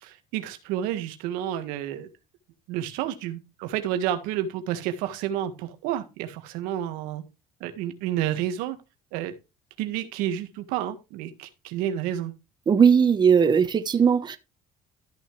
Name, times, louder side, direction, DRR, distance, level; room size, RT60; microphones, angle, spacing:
voice 1, 0.0-2.1 2.7-7.2 7.6-8.8 9.1-9.3 9.8-12.3, right 11 dB, 90° right, 1.7 m, -30 dB
voice 2, 12.7-14.4, right 7 dB, 30° right, 1.1 m, -18 dB
13.5 x 6.4 x 3.3 m
cardioid pair, 115°, 14 cm